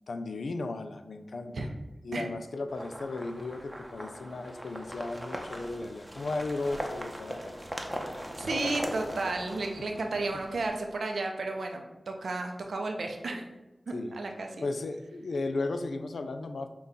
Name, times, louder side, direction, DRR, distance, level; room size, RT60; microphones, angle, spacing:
voice 1, 0.1-1.7 2.0-7.6 13.9-14.1 14.6-16.7, left 3 dB, 85° left, 8 dB, 0.3 m, -35 dB
sound 1, 2.7-10.7, equal, 5° right, 0.7 m, -40 dB
voice 2, 8.4-13.5 13.9-14.5, right 2 dB, 85° right, 3 dB, 0.5 m, -33 dB
5.5 x 2.3 x 3.7 m, 1.1 s
cardioid pair, 40°, 0 cm